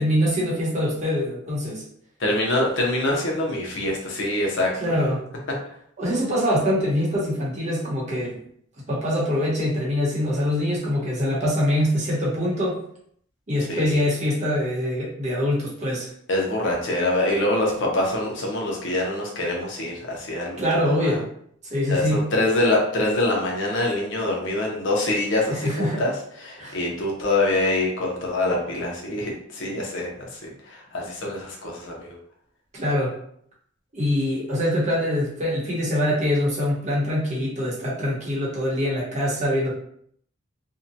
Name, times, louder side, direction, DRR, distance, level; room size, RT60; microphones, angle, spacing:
voice 1, 0.0-1.8 4.8-5.3 6.0-8.4 8.9-12.8 13.5-16.1 20.6-21.2 21.6-22.2 25.5-26.1 26.6-26.8 32.7-33.2 33.9-39.7, left 1 dB, 35° right, -6 dB, 0.9 m, -24 dB
voice 2, 2.2-4.9 13.7-14.0 16.3-21.2 21.9-32.2, left 1 dB, 70° left, -2 dB, 0.7 m, -25 dB
2.7 x 2.2 x 2.6 m, 0.67 s
head